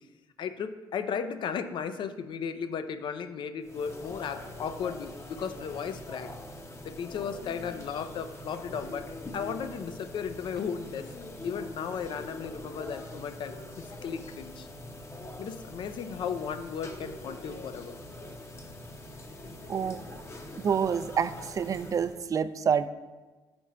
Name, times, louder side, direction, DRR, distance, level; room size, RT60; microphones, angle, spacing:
voice 1, 0.4-6.3 6.8-9.1 9.3-11.1 11.4-14.7 15.4-18.0, left 7 dB, 60° left, 10 dB, 0.5 m, -35 dB
sound 1, 3.6-22.3, left 1 dB, 30° left, 0.8 m, -44 dB
voice 2, 19.7-20.0 20.6-22.9, right 7 dB, 40° right, 13 dB, 0.4 m, -27 dB
5.5 x 4.4 x 6.1 m, 1.2 s
cardioid pair, 80°, 9 cm